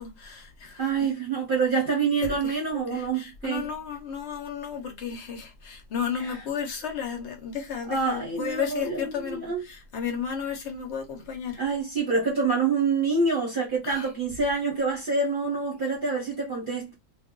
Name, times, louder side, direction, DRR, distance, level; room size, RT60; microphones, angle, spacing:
voice 1, 0.0-1.1 2.2-11.6 13.8-14.1, left 7 dB, 55° left, 0.9 m, -33 dB
voice 2, 0.8-3.6 7.9-9.6 11.6-16.9, right 4 dB, 40° right, 0.9 m, -26 dB
2.6 x 2.3 x 3.6 m
omnidirectional pair, 1.6 m